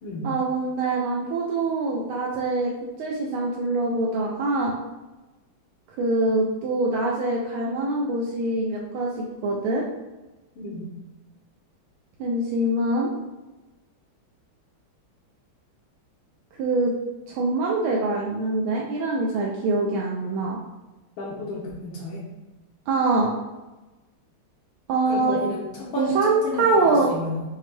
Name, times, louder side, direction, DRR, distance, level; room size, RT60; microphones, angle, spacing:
voice 1, 0.2-2.7 3.0-4.7 6.0-9.1 9.4-9.8 12.2-13.1 16.6-16.9 17.3-20.6 22.9-23.3 24.9-25.4 26.0-27.1, right 2 dB, 85° right, -2 dB, 1.4 m, -24 dB
voice 2, 10.6-10.9 21.2-22.2 25.1-27.4, left 2 dB, 75° left, -5 dB, 1.5 m, -32 dB
5.6 x 2.2 x 3.1 m, 1.1 s
omnidirectional pair, 2.2 m